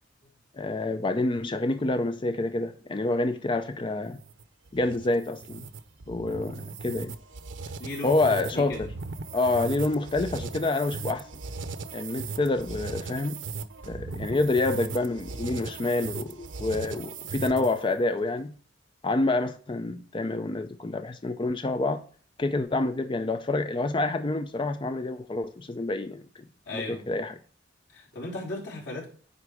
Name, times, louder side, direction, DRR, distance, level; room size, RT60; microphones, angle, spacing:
voice 1, 0.5-4.2 4.7-5.7 6.1-7.1 8.0-8.9 9.3-11.3 11.9-13.4 13.9-18.5 19.0-22.0 22.4-26.2 26.7-27.3, left 2 dB, 25° left, 0.4 m, -27 dB
sound 1, 4.1-17.9, right 4 dB, 90° right, 0.7 m, -38 dB
voice 2, 7.8-8.9 26.6-27.1 27.9-29.1, left 2 dB, 85° left, 3.2 m, -36 dB
9.7 x 3.8 x 4.7 m
head